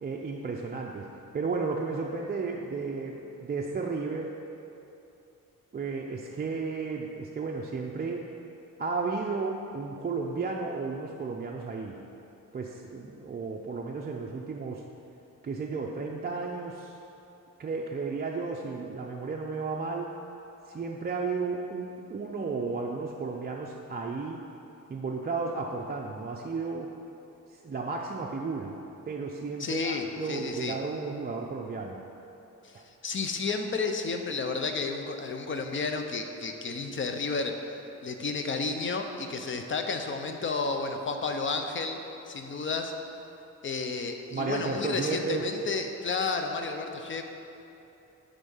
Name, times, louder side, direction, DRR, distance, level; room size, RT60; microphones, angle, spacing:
voice 1, 0.0-4.3 5.7-8.3 8.8-12.0 12.5-14.8 15.4-17.0 17.6-20.1 20.7-24.4 24.9-26.9 27.5-28.8 29.1-32.0 32.7-32.8 44.3-45.5, right 4 dB, 30° right, -1 dB, 0.4 m, -33 dB
voice 2, 29.6-30.8 32.6-32.7 33.0-37.5 38.0-42.0 42.3-42.9 43.6-47.2, left 4 dB, 40° left, 5 dB, 0.6 m, -31 dB
10.5 x 3.7 x 5.5 m, 2.9 s
wide cardioid pair, 135°, 31 cm